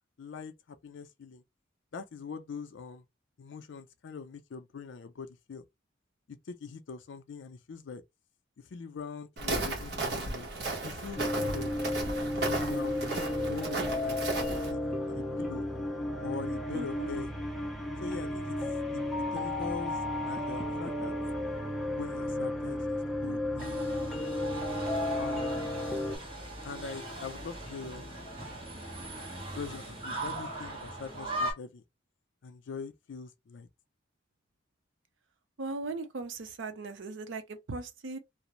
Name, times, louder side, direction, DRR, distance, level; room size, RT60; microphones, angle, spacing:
voice 1, 0.2-1.4 1.9-3.1 3.4-5.6 6.3-8.0 8.6-11.7 12.4-13.2 13.5-14.8 15.1-15.6 16.2-17.3 18.0-18.6 19.3-20.0 20.2-21.1 22.0-23.9 25.2-25.6 26.6-28.2 29.5-31.8 32.4-33.7, left 5 dB, 70° left, 0.4 m, -43 dB
Walk footsteps, 9.4-14.7, right 3 dB, 55° right, 0.9 m, -35 dB
sound 1, 11.2-26.2, left 1 dB, ahead, 0.5 m, -33 dB
voice 2, 16.7-17.1 35.6-38.2, right 3 dB, 75° right, 0.6 m, -38 dB
sound 2, 23.6-31.5, right 2 dB, 25° right, 1.1 m, -39 dB
2.4 x 2.0 x 3.0 m
head